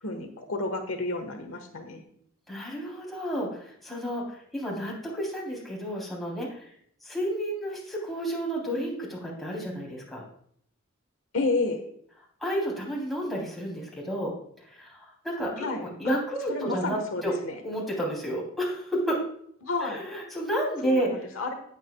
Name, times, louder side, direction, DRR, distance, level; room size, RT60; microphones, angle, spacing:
voice 1, 0.0-2.0 11.3-11.8 15.6-15.8 16.5-17.6 19.6-20.0 20.8-21.5, left 3 dB, 70° left, 5 dB, 1.4 m, -31 dB
voice 2, 2.5-6.7 7.0-10.2 12.4-14.3 14.7-17.0 17.2-17.3 17.6-19.2 19.8-21.1, equal, ahead, -4 dB, 3.4 m, -31 dB
18.0 x 7.7 x 2.3 m, 0.65 s
head